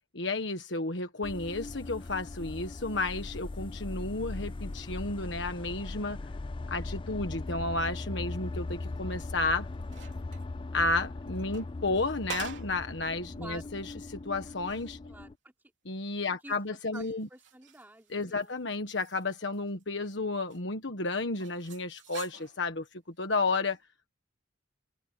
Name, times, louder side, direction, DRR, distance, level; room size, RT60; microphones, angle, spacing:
voice 1, 0.1-6.2 6.7-9.7 10.7-15.0 15.8-17.3 18.1-22.9 23.2-23.8, left 3 dB, 65° left, 1.5 m, -32 dB
sound 1, 1.2-15.3, left 2 dB, 25° left, 0.4 m, -39 dB
sound 2, 9.4-10.5 11.3-12.9 13.3-13.4 14.0-14.1 14.5-14.9 16.5-18.5 18.8-20.1 20.5-20.6 21.4-22.7 23.6-23.8, right 6 dB, 70° right, 3.1 m, -47 dB
voice 2, 13.4-13.7 15.1-15.5 16.4-16.5 16.9-18.6, right 1 dB, 10° right, 4.0 m, -48 dB
open air
head